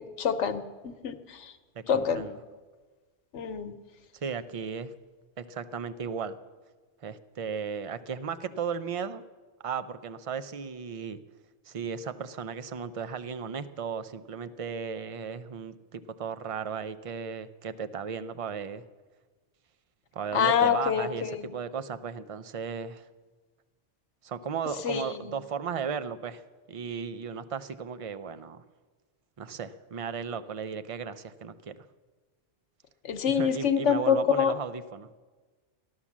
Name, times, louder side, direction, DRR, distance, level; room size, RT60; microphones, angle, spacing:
voice 1, 0.0-1.5 1.9-2.3 3.3-3.7 20.3-21.5 24.8-25.4 33.0-34.5, left 7 dB, 90° left, 10 dB, 1.2 m, -26 dB
voice 2, 1.9-2.4 4.2-4.9 5.4-6.4 7.0-9.2 9.6-11.2 11.7-18.8 20.1-23.1 24.2-26.4 26.7-28.6 29.4-31.7 33.4-35.1, right 6 dB, 40° right, 12 dB, 0.5 m, -35 dB
15.0 x 11.0 x 7.3 m, 1.4 s
omnidirectional pair, 1.2 m